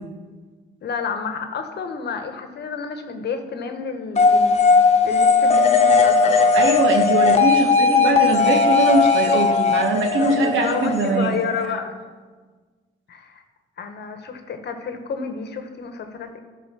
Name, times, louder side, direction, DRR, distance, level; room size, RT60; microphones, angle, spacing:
voice 1, 0.8-4.6 5.0-6.5 10.1-11.9 13.1-13.4 13.8-16.4, left 5 dB, 60° left, 7 dB, 1.1 m, -30 dB
sound 1, 4.2-11.6, left 4 dB, 35° left, 1.1 m, -17 dB
voice 2, 6.5-11.5, right 3 dB, 75° right, 3 dB, 1.5 m, -21 dB
11.0 x 5.1 x 6.2 m, 1.4 s
cardioid pair, 90°, 20 cm